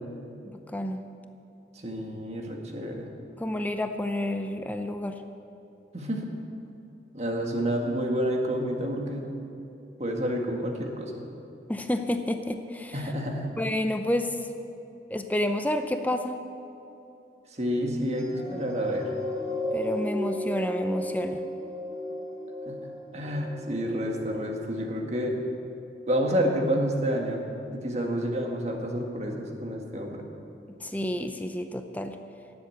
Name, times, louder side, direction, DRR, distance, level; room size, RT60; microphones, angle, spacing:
voice 1, 0.4-1.0 3.4-5.2 11.7-13.1 13.6-14.4 15.1-16.4 19.7-21.4 30.7-32.2, left 1 dB, 10° left, 6 dB, 0.6 m, -30 dB
voice 2, 1.8-3.1 5.9-6.3 7.1-9.3 10.0-11.2 12.9-13.5 17.5-19.1 22.7-22.8 23.1-25.4 26.1-27.4 27.7-30.3, equal, 40° right, 1 dB, 1.7 m, -29 dB
sound 1, 18.1-24.7 25.4-25.5, left 1 dB, 20° right, 1.4 m, -35 dB
17.0 x 7.8 x 8.0 m, 2.8 s
head